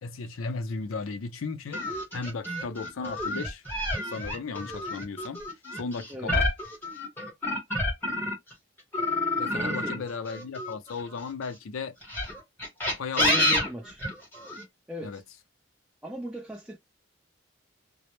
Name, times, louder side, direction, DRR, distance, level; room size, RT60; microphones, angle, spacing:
voice 1, 0.0-3.6 4.0-5.4 5.7-6.5 9.3-12.0 12.9-13.5 15.0-15.2, left 4 dB, 80° left, 0.5 m, -35 dB
sound 1, 1.7-8.5 8.9-11.3 12.0-14.6, left 1 dB, 10° left, 1.0 m, -29 dB
voice 2, 9.5-10.0 13.1-14.0 14.9-15.2 16.0-16.8, equal, 5° right, 0.5 m, -36 dB
2.0 x 2.0 x 2.9 m
head